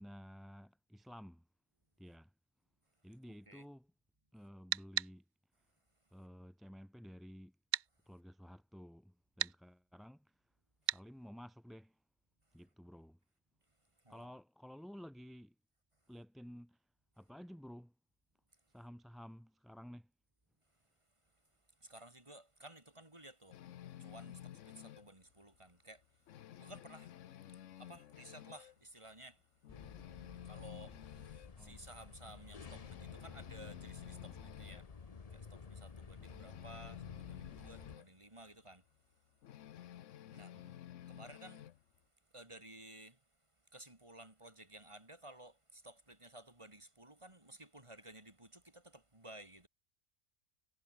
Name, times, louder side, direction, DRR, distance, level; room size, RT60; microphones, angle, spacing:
voice 1, 0.0-1.5 2.0-2.3 3.0-3.9 4.3-5.2 6.1-7.6 8.0-10.4 10.9-12.0 12.5-13.2 14.1-15.5 16.1-16.8 17.2-17.9 18.7-20.1 31.6-31.8 40.5-40.8, equal, ahead, 1.2 m, -53 dB
sound 1, 4.7-5.1 7.7-7.9 9.4-9.6 10.9-11.0, right 10 dB, 60° right, 0.5 m, -34 dB
voice 2, 14.0-14.4 21.7-23.7 23.9-29.5 30.3-35.0 35.3-39.0 40.3-40.7 41.1-42.0 42.3-43.2 43.7-49.7, right 1 dB, 20° right, 2.9 m, -56 dB
sound 2, 23.5-25.1 25.5-25.7 26.0-28.8 29.2-29.3 29.6-31.5 32.0-32.1 32.5-34.9 36.2-38.1 39.4-41.8, left 11 dB, 70° left, 1.1 m, -52 dB
sound 3, 29.7-38.0, left 5 dB, 35° left, 0.9 m, -53 dB
omnidirectional pair, 1.4 m